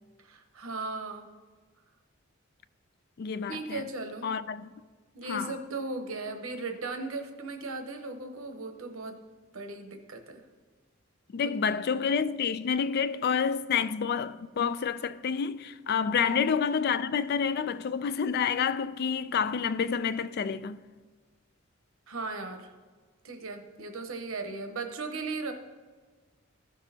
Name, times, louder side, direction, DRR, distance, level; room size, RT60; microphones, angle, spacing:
voice 1, 0.2-1.3 3.5-4.3 5.1-9.2 9.5-10.4 11.7-12.0 16.1-16.4 22.1-22.7 23.2-25.5, right 3 dB, 90° right, 0.8 m, -37 dB
voice 2, 3.2-3.9 4.2-4.7 5.3-5.5 11.3-20.8, left 6 dB, 50° left, 0.3 m, -29 dB
14.5 x 6.1 x 2.8 m
head